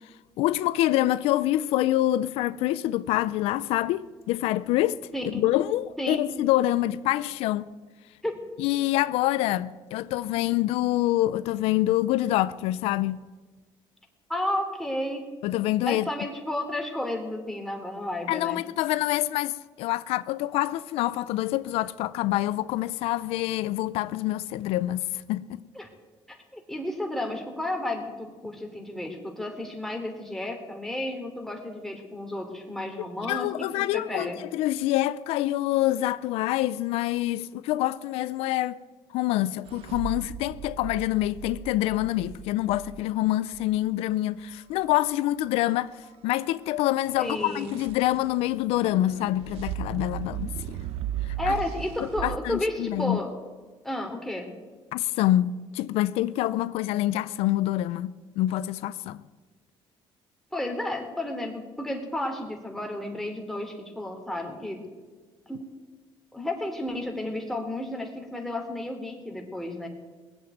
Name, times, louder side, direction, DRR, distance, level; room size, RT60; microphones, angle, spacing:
voice 1, 0.4-5.0 5.2-7.7 8.6-13.2 15.4-16.1 18.3-25.6 33.3-38.8 39.1-45.9 46.2-50.5 51.3-51.5 52.2-53.2 54.9-59.2, left 15 dB, 90° left, 0.5 m, -26 dB
voice 2, 14.3-15.2 15.9-18.6 25.7-25.9 26.3-34.4 47.2-47.8 51.4-53.3 53.8-54.5 60.5-64.8 65.5-65.6 66.3-69.9, left 1 dB, 5° left, 3.2 m, -32 dB
sound 1, 39.7-43.7 47.0-52.4, right 11 dB, 85° right, 0.8 m, -37 dB
20.0 x 8.1 x 9.1 m
cardioid pair, 100°, 10 cm